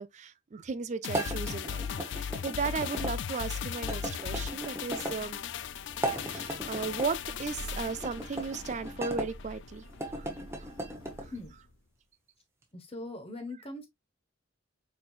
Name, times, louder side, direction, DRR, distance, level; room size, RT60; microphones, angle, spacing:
voice 1, 0.0-5.4 6.0-9.8 10.1-10.3 10.6-10.7 11.2-11.3, right 5 dB, 35° right, 0.4 m, -36 dB
sound 1, 1.0-9.6 9.9-10.0, left 8 dB, 60° left, 0.3 m, -38 dB
sound 2, 1.1-3.1 3.9-5.2 5.9-7.1 8.0-9.3 9.9-11.3, right 1 dB, 15° right, 1.0 m, -37 dB
Thunder / Rain, 4.1-11.9, equal, 85° left, 0.8 m, -48 dB
voice 2, 12.7-13.9, left 2 dB, 30° left, 1.0 m, -41 dB
4.5 x 4.3 x 2.4 m
head